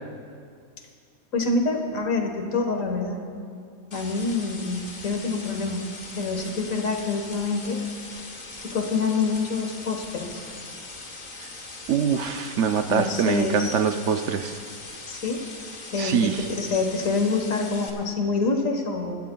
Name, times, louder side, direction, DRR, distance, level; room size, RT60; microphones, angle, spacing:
voice 1, 1.3-3.2 3.9-5.9 6.2-7.8 8.6-10.4 12.9-13.8 15.1-15.4 15.9-19.2, left 3 dB, 70° left, 3 dB, 1.7 m, -26 dB
sound 1, 3.9-17.9, left 3 dB, 35° left, 1.1 m, -40 dB
voice 2, 11.9-14.5 16.0-16.4, right 7 dB, 65° right, 7 dB, 0.8 m, -24 dB
24.0 x 13.0 x 2.3 m, 2.3 s
omnidirectional pair, 1.4 m